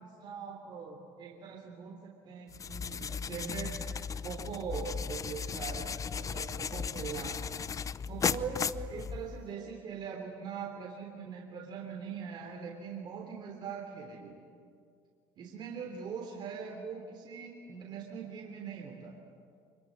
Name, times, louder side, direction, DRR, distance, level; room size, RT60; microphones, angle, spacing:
voice 1, 0.0-3.8 4.1-7.4 8.0-14.4 15.4-19.2, right 6 dB, 50° right, 1 dB, 3.4 m, -42 dB
sound 1, 2.5-9.5, left 6 dB, 30° left, 0.7 m, -36 dB
25.5 x 23.0 x 9.5 m, 2.3 s
supercardioid pair, 95°, 10 cm